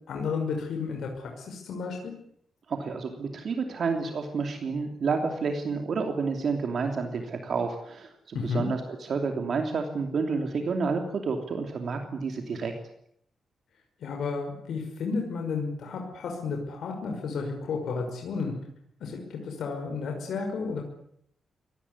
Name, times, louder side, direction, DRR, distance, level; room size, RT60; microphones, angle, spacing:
voice 1, 0.1-2.1 8.3-8.7 14.0-18.5 19.0-20.8, left 4 dB, 85° left, 2 dB, 5.8 m, -32 dB
voice 2, 2.7-12.7, right 4 dB, 55° right, 4 dB, 3.1 m, -30 dB
25.5 x 18.5 x 9.9 m, 0.71 s
wide cardioid pair, 150°, 0 cm